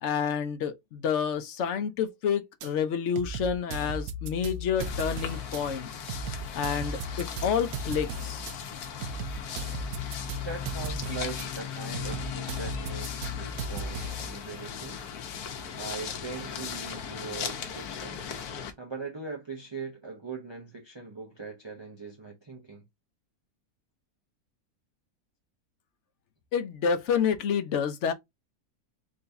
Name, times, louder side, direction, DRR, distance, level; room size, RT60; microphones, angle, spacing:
voice 1, 0.0-6.1 6.5-8.4 26.5-28.1, left 7 dB, 60° left, 0.9 m, -29 dB
sound 1, 2.6-2.7 3.2-5.6 6.1-8.5 9.0-11.5 11.9-14.3, right 1 dB, 75° right, 1.0 m, -36 dB
sound 2, 4.8-18.7, left 7 dB, 75° left, 1.3 m, -38 dB
voice 2, 10.4-15.0 15.8-18.2 18.8-22.8, right 4 dB, 35° right, 0.4 m, -40 dB
3.9 x 2.7 x 3.4 m
omnidirectional pair, 1.7 m